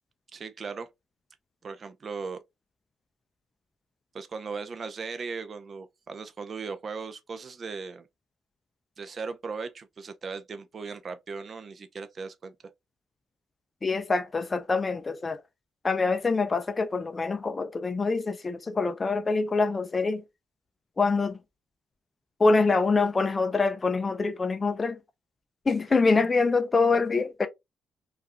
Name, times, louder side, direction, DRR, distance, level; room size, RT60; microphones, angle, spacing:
voice 1, 0.3-0.9 1.6-2.4 4.1-8.1 9.0-12.5, right 4 dB, 45° right, 0.4 m, -37 dB
voice 2, 13.8-15.4 15.8-20.2 21.0-21.4 22.4-25.0 25.7-27.5, left 3 dB, 30° left, 0.3 m, -25 dB
2.4 x 2.3 x 2.6 m
cardioid pair, 90°, 0 cm